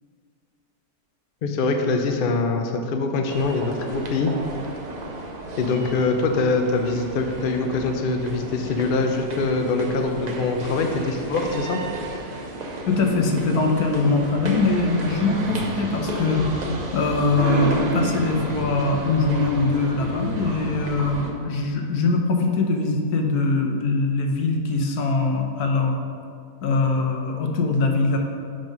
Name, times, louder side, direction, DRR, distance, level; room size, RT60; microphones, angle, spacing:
voice 1, 1.4-4.3 5.6-11.8, left 3 dB, 60° left, 4 dB, 0.5 m, -23 dB
sound 1, 3.3-21.3, right 1 dB, 45° right, 0.6 m, -31 dB
voice 2, 12.9-26.0 26.6-28.2, left 3 dB, 80° left, 2 dB, 1.3 m, -22 dB
5.3 x 5.3 x 5.3 m, 2.3 s
omnidirectional pair, 1.6 m